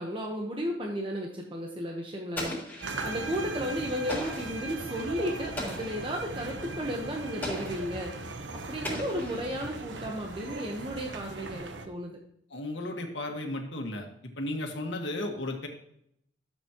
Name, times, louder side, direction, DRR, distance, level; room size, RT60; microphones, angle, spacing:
voice 1, 0.0-8.1 8.5-12.2, equal, 30° right, 0 dB, 1.1 m, -34 dB
Explosion, 2.3-3.3 4.1-4.6 5.6-6.1 7.4-8.0 8.8-9.7, left 1 dB, 10° left, 3.6 m, -37 dB
sound 1, 2.8-11.9, right 2 dB, 80° right, 1.0 m, -39 dB
voice 2, 12.5-14.0 14.4-15.7, left 1 dB, 80° left, 3 dB, 1.8 m, -34 dB
12.5 x 7.4 x 3.0 m, 0.72 s
head